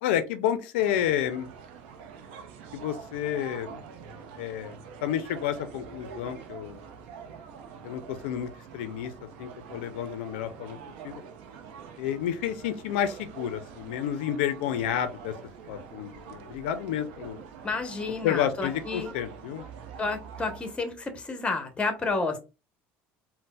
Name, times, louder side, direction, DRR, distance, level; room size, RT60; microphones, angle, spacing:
voice 1, 0.0-1.5 2.7-3.8 4.4-6.8 7.8-9.1 9.4-10.8 11.0-11.2 12.0-15.3 15.7-17.4 18.2-19.6, left 10 dB, 90° left, 0.4 m, -30 dB
sound 1, 0.8-20.7, right 6 dB, 85° right, 0.5 m, -45 dB
voice 2, 17.6-19.1 20.0-22.4, left 3 dB, 20° left, 0.8 m, -30 dB
3.9 x 2.0 x 2.2 m
supercardioid pair, 100°, 6 cm